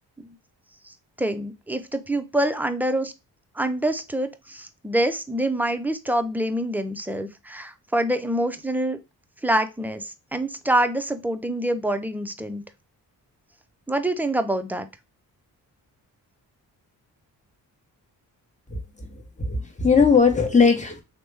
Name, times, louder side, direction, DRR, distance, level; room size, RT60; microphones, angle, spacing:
voice 1, 0.9-3.1 3.6-9.0 9.4-12.6 13.9-14.9, right 1 dB, 5° right, 8 dB, 0.4 m, -26 dB
voice 2, 18.7-21.0, left 5 dB, 15° left, 3 dB, 1.0 m, -20 dB
3.0 x 2.1 x 3.3 m, 0.25 s
supercardioid pair, 55°, 43 cm